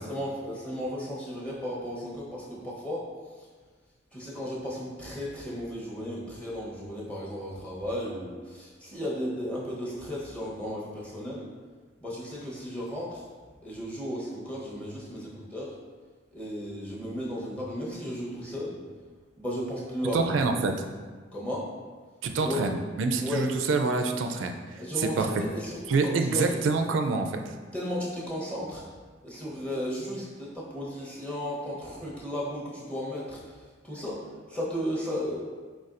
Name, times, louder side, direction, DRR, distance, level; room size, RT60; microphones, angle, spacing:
voice 1, 0.1-3.1 4.1-11.5 12.0-13.2 13.6-15.7 16.3-18.8 19.4-20.4 21.3-21.7 22.4-22.7 23.1-23.6 24.8-26.6 27.7-28.8 29.2-35.4, equal, 5° left, -6 dB, 0.9 m, -34 dB
voice 2, 20.1-20.7 22.2-25.3 25.9-27.4, right 4 dB, 75° right, 5 dB, 0.4 m, -27 dB
4.7 x 4.1 x 2.5 m, 1.4 s
head